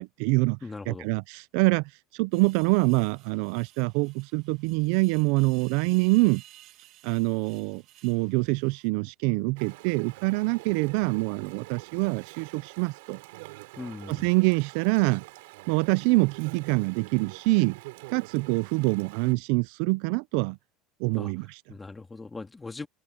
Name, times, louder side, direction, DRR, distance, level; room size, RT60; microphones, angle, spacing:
voice 1, 0.0-0.6 0.9-1.8 2.1-6.4 7.0-13.2 14.1-15.2 15.7-17.8 18.1-20.6 21.0-21.6, right 26 dB, 70° right, 0.4 m, -25 dB
voice 2, 0.6-1.1 13.8-14.3 21.1-21.3 21.7-22.9, left 3 dB, 10° left, 2.4 m, -39 dB
sound 1, 2.3-8.9, right 15 dB, 55° right, 2.5 m, -55 dB
Chatter / Stream, 9.6-19.3, right 23 dB, 90° right, 6.3 m, -46 dB
open air
cardioid pair, 150°, 0 cm